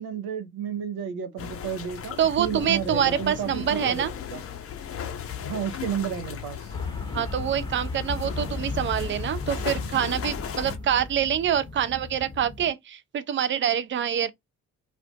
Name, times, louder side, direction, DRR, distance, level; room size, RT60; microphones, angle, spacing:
voice 1, 0.0-4.4 5.5-6.7, right 8 dB, 55° right, 0.7 m, -32 dB
sound 1, 1.4-10.8, left 8 dB, 30° left, 0.6 m, -37 dB
voice 2, 2.2-4.1 7.1-14.3, right 9 dB, 25° right, 0.4 m, -26 dB
sound 2, 6.7-12.7, left 3 dB, 10° left, 0.9 m, -35 dB
2.4 x 2.2 x 2.3 m
figure-of-eight pair, 45°, 45 cm